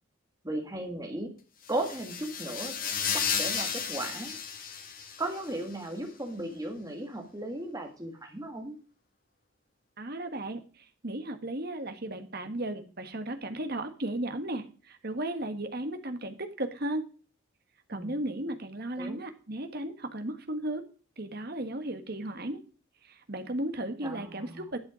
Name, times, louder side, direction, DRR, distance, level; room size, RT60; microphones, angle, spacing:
voice 1, 0.4-1.3 1.7-2.7 3.1-4.4 5.2-8.8 17.9-18.1 19.0-19.2 24.0-24.6, right 1 dB, 15° right, 3 dB, 1.8 m, -36 dB
sound 1, 1.6-5.5, left 7 dB, 40° left, 1.5 m, -33 dB
voice 2, 10.0-17.0 17.9-20.8 21.2-22.6 23.1-24.8, right 1 dB, 50° right, 8 dB, 1.5 m, -35 dB
11.5 x 6.8 x 5.0 m, 0.38 s
head